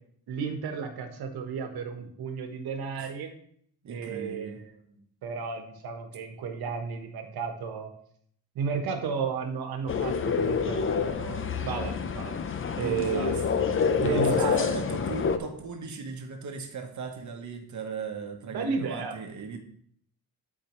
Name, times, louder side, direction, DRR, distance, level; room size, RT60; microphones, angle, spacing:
voice 1, 0.3-3.3 3.9-7.9 8.5-12.3 12.8-13.4 14.0-14.6 18.5-19.2, right 5 dB, 85° right, 5 dB, 1.3 m, -33 dB
voice 2, 3.8-4.6 12.7-13.4 13.9-19.6, right 4 dB, 50° right, 4 dB, 1.1 m, -37 dB
sound 1, 9.9-15.4, left 6 dB, 35° left, 0.6 m, -27 dB
12.0 x 4.6 x 3.1 m, 0.65 s
cardioid pair, 120°, 36 cm